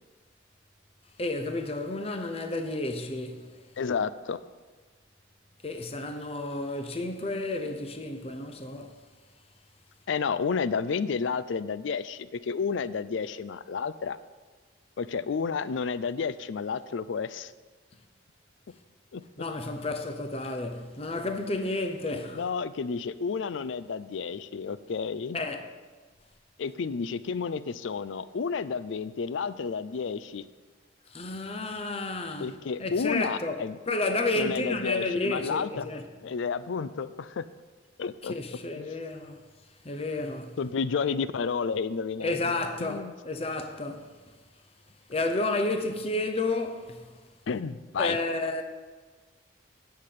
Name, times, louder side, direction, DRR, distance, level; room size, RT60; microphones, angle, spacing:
voice 1, 1.2-3.6 5.6-8.9 19.4-22.4 25.3-25.7 31.1-32.5 32.8-33.6 33.9-36.0 38.2-39.4 39.8-40.6 42.2-44.1 45.1-47.1 48.0-48.6, left 2 dB, 30° left, 0.8 m, -31 dB
voice 2, 3.8-4.4 10.1-14.2 15.0-17.5 19.1-19.2 22.3-25.4 26.6-30.5 32.4-33.8 34.4-35.9 36.2-37.4 38.0-38.3 38.8-38.9 40.6-42.4 42.8-43.1 47.5-48.2, left 5 dB, 75° left, 0.4 m, -31 dB
9.7 x 5.8 x 8.5 m
head